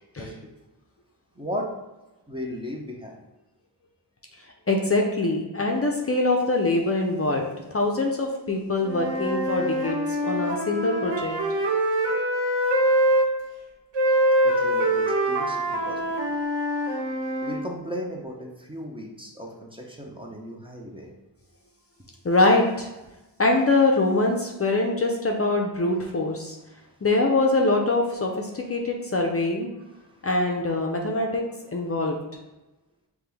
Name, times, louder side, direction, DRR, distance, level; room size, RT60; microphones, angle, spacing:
voice 1, 0.2-0.5 1.3-1.8 2.3-3.2 14.4-16.4 17.4-21.1 26.7-27.0 29.9-30.3, equal, 10° right, -1 dB, 0.6 m, -36 dB
voice 2, 4.7-11.3 22.2-22.9 23.4-26.6 27.0-29.7 30.2-32.2, left 2 dB, 35° left, 1 dB, 0.6 m, -23 dB
Wind instrument woodwind instrument, 8.8-13.3 13.9-17.6, right 1 dB, 80° right, 1.1 m, -24 dB
5.7 x 2.3 x 3.4 m, 1.0 s
wide cardioid pair, 90°, 43 cm